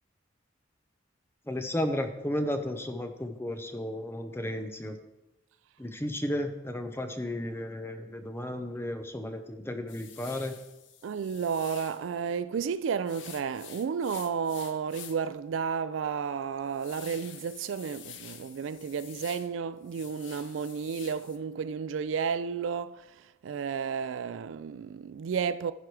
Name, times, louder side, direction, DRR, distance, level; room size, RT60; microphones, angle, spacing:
voice 1, 1.4-5.0 5.8-10.5, left 1 dB, 10° left, 0.8 m, -33 dB
sound 1, 9.9-12.1 13.1-15.3 15.7-15.8 16.3-19.5 19.8-21.4, left 9 dB, 70° left, 0.8 m, -48 dB
voice 2, 11.0-25.7, right 6 dB, 75° right, 0.3 m, -32 dB
14.5 x 4.9 x 4.7 m
head